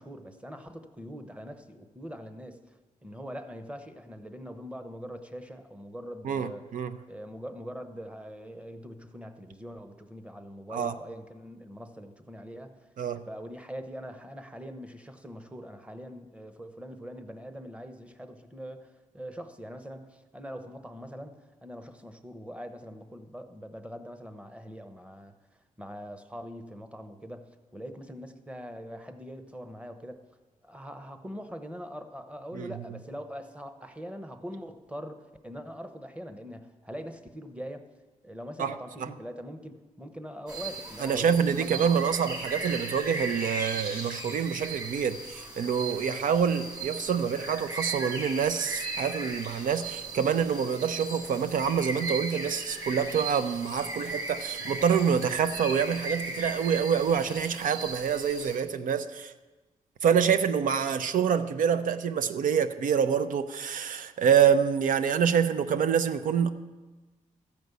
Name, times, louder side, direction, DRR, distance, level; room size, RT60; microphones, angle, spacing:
voice 1, 0.0-6.6 7.1-25.3 25.8-30.2 30.6-37.9 38.2-41.9, equal, 10° right, 0.9 m, -42 dB
voice 2, 6.2-6.9 10.7-10.9 13.0-13.2 32.5-32.7 38.6-39.1 41.0-59.3 60.0-66.5, right 7 dB, 75° right, 0.7 m, -26 dB
sound 1, 40.5-58.6, right 2 dB, 30° right, 2.9 m, -37 dB
13.5 x 5.2 x 8.2 m
cardioid pair, 95°, 14 cm